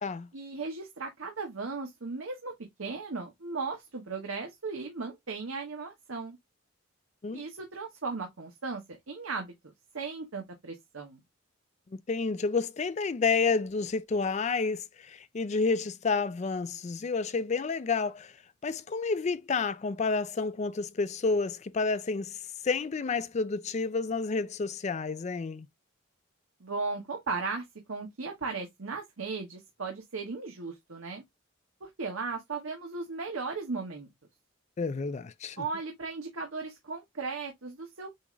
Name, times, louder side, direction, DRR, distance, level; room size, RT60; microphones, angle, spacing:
voice 1, 0.3-2.5 2.8-6.4 7.3-11.2 26.6-31.2 31.8-34.1 35.6-38.2, right 4 dB, 80° right, 1.0 m, -36 dB
voice 2, 11.9-18.4 18.6-25.7 34.8-35.7, left 4 dB, 35° left, 0.4 m, -30 dB
6.9 x 2.5 x 3.0 m
head